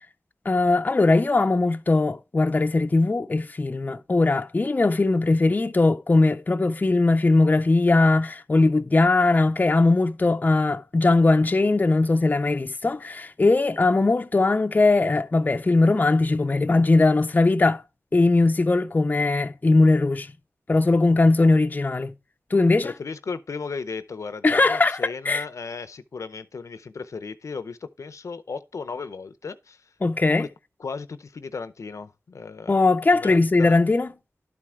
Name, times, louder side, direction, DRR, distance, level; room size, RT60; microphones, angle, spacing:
voice 1, 0.5-17.8 18.1-20.3 20.7-22.1 22.5-22.9 24.4-25.5 30.0-30.5 32.7-34.1, left 3 dB, 30° left, 0.5 m, -20 dB
voice 2, 22.8-29.8 30.3-30.5 30.8-32.9 33.1-33.8, left 4 dB, 70° left, 0.6 m, -35 dB
12.0 x 4.4 x 3.6 m
wide cardioid pair, 90°, 5 cm